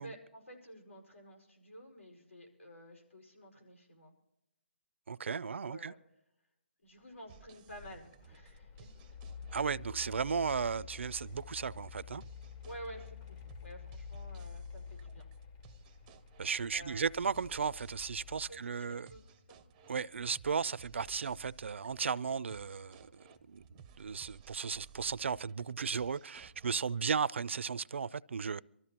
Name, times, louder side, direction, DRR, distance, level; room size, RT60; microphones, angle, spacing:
voice 1, 0.0-4.1 5.3-6.0 6.8-8.9 11.1-11.4 12.6-15.3 16.7-17.3 18.5-19.6, equal, 85° left, 5.1 m, -51 dB
voice 2, 5.1-5.9 9.5-12.2 16.4-19.1 19.9-28.6, right 6 dB, 65° right, 0.4 m, -35 dB
Mechanical fan, 7.2-18.5, left 7 dB, 20° left, 0.7 m, -49 dB
sound 1, 7.3-26.8, right 7 dB, 15° right, 0.5 m, -59 dB
sound 2, 14.2-24.0, left 2 dB, 55° left, 7.1 m, -68 dB
24.0 x 14.0 x 2.9 m
hypercardioid pair, 165°, 7 cm